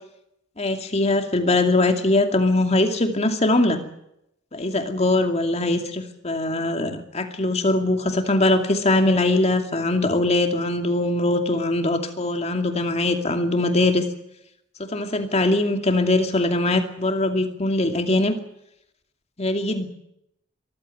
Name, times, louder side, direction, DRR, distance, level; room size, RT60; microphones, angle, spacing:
voice 1, 0.6-3.8 4.5-14.0 14.8-18.3 19.4-19.9, left 2 dB, 35° left, 6 dB, 2.5 m, -21 dB
23.5 x 15.0 x 9.3 m, 0.81 s
head